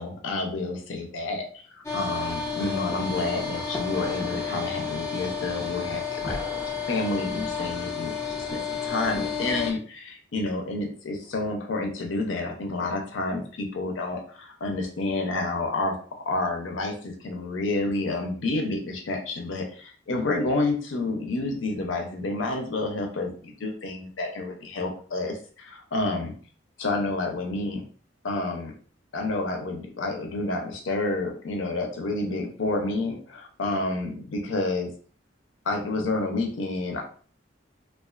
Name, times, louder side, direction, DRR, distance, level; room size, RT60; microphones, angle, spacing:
voice 1, 0.0-6.6 6.9-15.9 16.2-26.3 26.8-27.8 28.2-28.7 29.1-34.9 35.7-37.0, left 2 dB, 80° left, 2 dB, 0.6 m, -29 dB
sound 1, 1.8-9.7, left 5 dB, 15° left, 0.4 m, -31 dB
2.3 x 2.3 x 2.3 m, 0.43 s
head